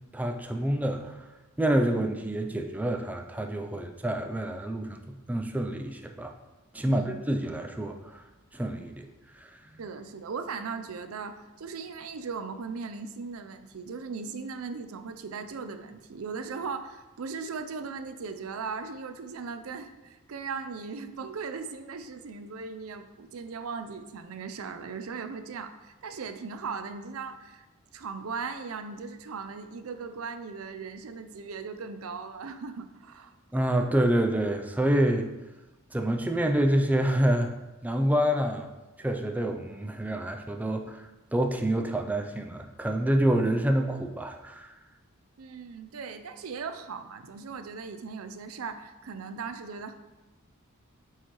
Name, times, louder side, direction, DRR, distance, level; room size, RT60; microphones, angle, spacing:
voice 1, 0.1-1.2 1.6-5.0 5.3-6.3 6.7-8.2 8.5-9.1 9.3-9.5 33.5-35.3 35.9-37.5 37.8-38.7 39.0-44.7, right 1 dB, 5° right, 4 dB, 0.3 m, -27 dB
voice 2, 6.8-7.1 9.8-27.7 27.9-33.3 45.4-49.9, right 5 dB, 80° right, 9 dB, 0.5 m, -38 dB
8.0 x 4.6 x 3.0 m, 1.1 s
head